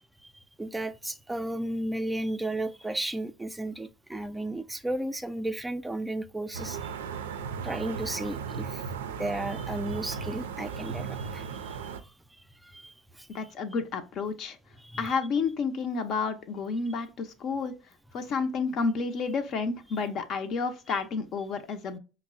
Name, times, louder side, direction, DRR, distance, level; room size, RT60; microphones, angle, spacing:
voice 1, 0.2-6.9 7.6-8.8 9.2-13.3 14.8-15.2, right 1 dB, 10° right, 0.3 m, -34 dB
sound 1, 6.5-12.0, right 6 dB, 85° right, 0.3 m, -36 dB
voice 2, 13.3-14.6 15.0-17.7 18.1-22.0, left 4 dB, 55° left, 0.5 m, -30 dB
5.1 x 2.0 x 2.4 m
hypercardioid pair, 70°, 0 cm